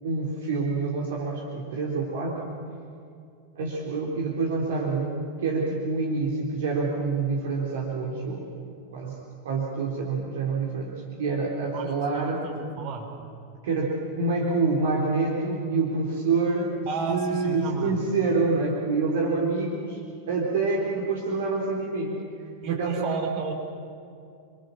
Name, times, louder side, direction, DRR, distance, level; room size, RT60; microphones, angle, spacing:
voice 1, 0.0-2.6 3.6-8.6 8.9-9.2 9.4-12.4 13.6-20.0 20.3-22.2 22.7-23.2, right 3 dB, 60° right, -2 dB, 3.9 m, -27 dB
voice 2, 12.1-13.1 16.9-18.0 22.6-23.5, right 5 dB, 40° right, 2 dB, 5.2 m, -32 dB
29.0 x 24.0 x 7.4 m, 2.5 s
figure-of-eight pair, 90°, 0 cm